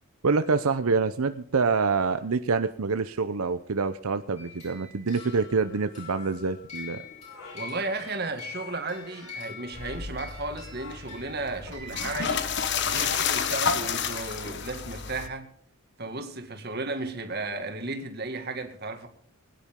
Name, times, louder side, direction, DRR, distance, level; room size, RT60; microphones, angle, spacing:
voice 1, 0.2-7.0, right 4 dB, 85° right, 0.7 m, -26 dB
sound 1, 4.4-12.7, left 5 dB, 30° left, 7.5 m, -45 dB
sound 2, 5.7-8.2 8.5-14.6, left 4 dB, 85° left, 6.6 m, -50 dB
voice 2, 7.5-12.4 12.8-15.5 16.0-19.1, right 3 dB, 45° right, 2.1 m, -34 dB
sound 3, 9.7-15.3, left 6 dB, 50° left, 1.2 m, -30 dB
21.0 x 10.5 x 3.7 m
head